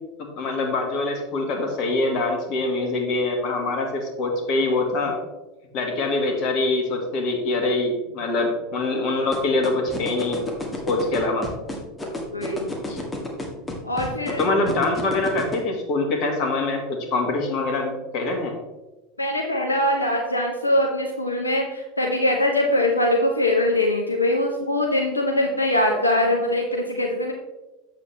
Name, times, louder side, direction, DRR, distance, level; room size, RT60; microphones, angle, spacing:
voice 1, 0.2-5.2 5.7-10.4 10.9-11.5 12.9-13.0 14.3-18.5, left 2 dB, 45° left, 2 dB, 1.7 m, -24 dB
sound 1, 9.3-15.6, left 2 dB, 15° left, 1.7 m, -30 dB
voice 2, 12.3-12.7 13.8-14.5 15.1-15.2 19.2-27.3, left 1 dB, 85° left, 1 dB, 0.8 m, -22 dB
7.8 x 6.7 x 3.3 m, 1.1 s
figure-of-eight pair, 80°, 0 cm